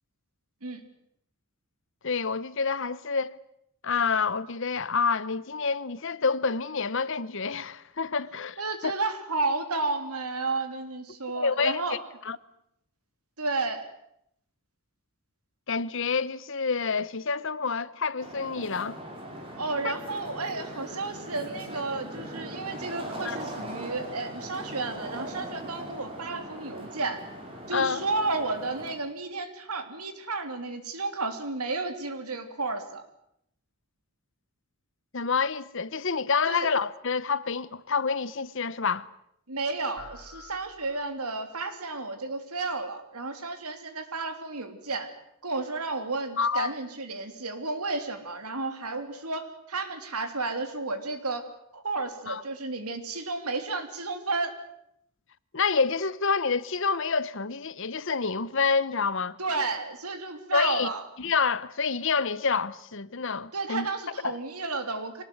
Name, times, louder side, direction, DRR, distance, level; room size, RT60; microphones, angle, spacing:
voice 1, 2.0-3.4 3.8-8.9 11.3-12.0 12.2-12.4 15.7-19.0 23.2-23.4 27.7-28.0 35.1-39.1 46.4-46.7 52.3-52.4 55.5-59.4 60.5-60.9 61.2-63.9 64.2-64.4, left 5 dB, 55° left, 0.9 m, -28 dB
voice 2, 8.6-12.0 13.4-13.9 19.6-27.2 27.7-33.0 36.5-36.7 39.5-45.1 45.4-51.4 51.7-54.5 59.4-61.0 63.5-65.2, right 3 dB, 85° right, 3.2 m, -32 dB
sound 1, 18.2-28.9, right 1 dB, 25° right, 5.7 m, -40 dB
sound 2, 40.0-41.5, left 4 dB, 70° left, 2.8 m, -49 dB
25.0 x 19.0 x 9.6 m
head